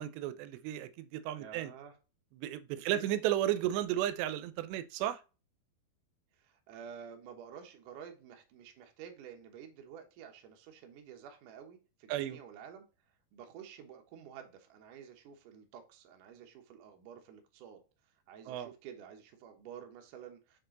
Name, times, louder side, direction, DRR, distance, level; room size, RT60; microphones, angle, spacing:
voice 1, 0.0-1.7 2.4-5.2 12.1-12.4 18.5-18.7, right 12 dB, 90° right, 2.8 m, -33 dB
voice 2, 1.3-2.0 2.7-3.2 6.4-12.9 13.3-17.8 18.3-20.6, right 8 dB, 65° right, 2.2 m, -50 dB
6.6 x 4.4 x 3.8 m
omnidirectional pair, 4.9 m